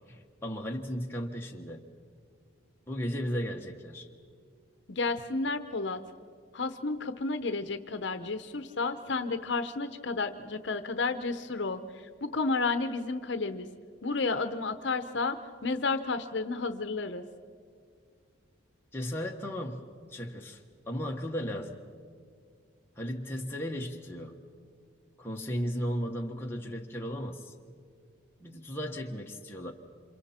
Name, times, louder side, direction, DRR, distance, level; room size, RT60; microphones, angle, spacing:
voice 1, 0.0-1.8 2.9-4.1 18.9-19.8 20.1-21.8 23.0-24.4 25.2-27.5 28.4-29.7, equal, 10° left, 0 dB, 1.4 m, -35 dB
voice 2, 4.9-6.0 6.5-11.8 12.2-13.7 14.0-15.4 15.6-17.2, left 3 dB, 65° left, 9 dB, 0.8 m, -31 dB
29.5 x 26.5 x 4.4 m, 2.1 s
head